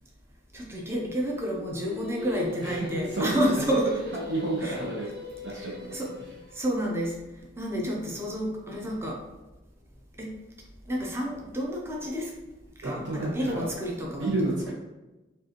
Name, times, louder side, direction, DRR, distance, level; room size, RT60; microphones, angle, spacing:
voice 1, 0.5-4.0 4.6-4.8 5.6-6.1 6.5-7.2 7.6-9.2 10.2-10.3 10.9-12.3 12.8-14.3, equal, 15° right, -2 dB, 0.6 m, -29 dB
Singing, 1.6-6.8, left 2 dB, 50° right, 1.3 m, -40 dB
voice 2, 2.6-3.4 4.3-5.1 5.4-6.1 12.8-13.7 14.1-14.7, right 2 dB, 65° right, -6 dB, 0.9 m, -31 dB
5.3 x 2.4 x 2.9 m, 1.1 s
head